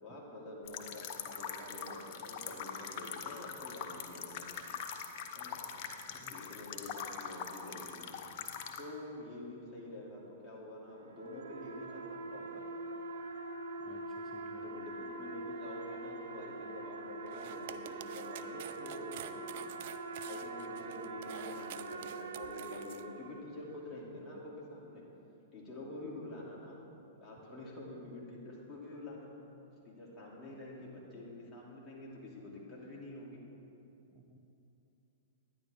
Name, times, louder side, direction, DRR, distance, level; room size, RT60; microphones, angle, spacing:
voice 1, 0.0-4.5 5.3-5.7 6.3-8.1 8.8-12.6 14.5-19.7 20.2-25.0 25.5-26.8 27.2-29.3 29.8-33.4, left 1 dB, 20° left, -5 dB, 2.5 m, -47 dB
sound 1, 0.7-8.8, left 7 dB, 45° left, 0.8 m, -43 dB
sound 2, 10.9-23.7, right 2 dB, 75° right, 0.7 m, -44 dB
voice 2, 13.8-14.6 34.1-34.4, right 3 dB, 15° right, 1 dB, 0.6 m, -57 dB
sound 3, 17.3-23.0, right 12 dB, 55° right, 0.4 m, -49 dB
10.5 x 10.0 x 3.5 m, 2.9 s
hypercardioid pair, 115°, 0 cm